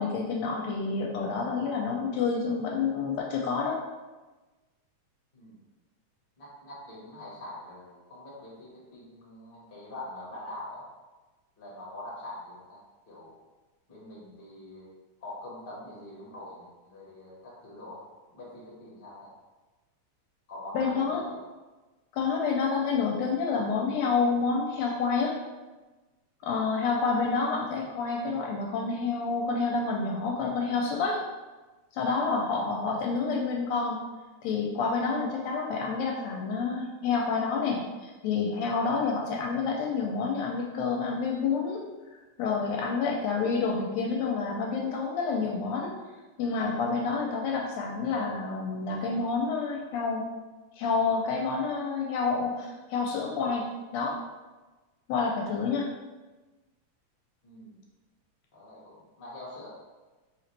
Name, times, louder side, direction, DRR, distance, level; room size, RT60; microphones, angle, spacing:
voice 1, 0.0-3.7 20.7-21.2 22.1-25.4 26.4-31.2 31.9-34.0 34.4-41.8 42.4-45.9 46.4-50.2 50.8-54.1 55.1-55.9, left 4 dB, 80° left, 0 dB, 1.6 m, -28 dB
voice 2, 6.4-10.8 11.6-13.3 13.9-14.9 15.2-18.0 18.3-19.3 20.5-21.4 32.3-32.5 57.4-57.8 58.5-59.7, left 1 dB, 55° left, -6 dB, 0.6 m, -44 dB
4.9 x 3.0 x 3.2 m, 1.2 s
omnidirectional pair, 3.4 m